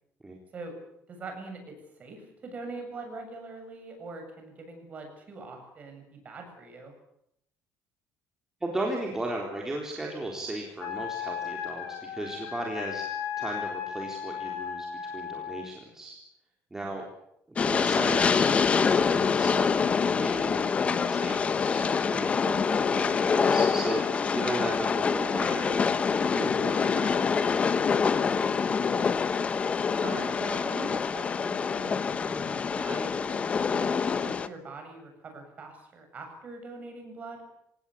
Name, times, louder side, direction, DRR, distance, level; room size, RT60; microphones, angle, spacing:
voice 1, 1.1-6.9 16.9-17.1 28.9-29.2 30.0-33.4 33.7-37.4, right 3 dB, 30° right, 4 dB, 7.8 m, -42 dB
voice 2, 8.6-14.9 15.1-16.1 16.7-17.0 17.5-27.7, right 1 dB, 10° right, 0 dB, 3.8 m, -36 dB
Wind instrument woodwind instrument, 10.8-15.7, left 8 dB, 60° left, 6.7 m, -36 dB
Train, 17.6-34.5, left 5 dB, 25° left, 1.1 m, -26 dB
26.5 x 18.5 x 8.6 m, 0.75 s
cardioid pair, 165°, 5 cm